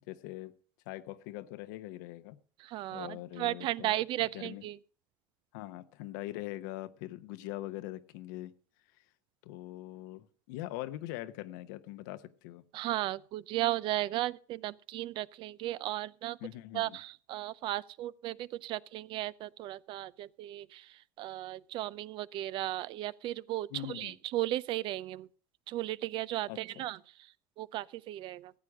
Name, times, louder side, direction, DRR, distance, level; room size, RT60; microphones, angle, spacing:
voice 1, 0.1-0.5 0.9-2.4 2.9-4.6 5.5-8.5 9.4-12.6 16.4-17.0 23.7-24.2 26.5-26.8, left 16 dB, 80° left, 0.9 m, -42 dB
voice 2, 2.6-4.8 12.7-16.4 16.7-25.3 25.7-28.5, right 15 dB, 55° right, 0.5 m, -35 dB
15.0 x 8.4 x 6.2 m
supercardioid pair, 100°, 10 cm